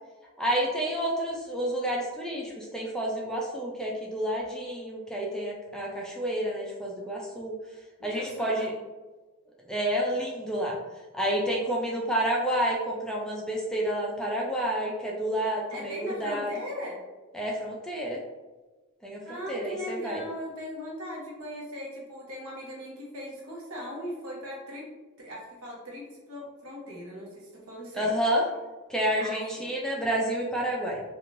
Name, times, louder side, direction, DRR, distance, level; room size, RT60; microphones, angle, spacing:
voice 1, 0.4-7.6 8.0-8.7 9.7-10.8 11.1-16.5 17.3-18.2 19.0-19.2 19.5-20.2 27.9-28.4 28.9-31.0, equal, 5° left, -3 dB, 0.3 m, -29 dB
voice 2, 8.0-8.8 15.7-17.0 19.3-24.9 25.2-28.1 29.2-29.7, equal, 80° right, -3 dB, 1.0 m, -39 dB
3.1 x 2.5 x 2.5 m, 1.2 s
head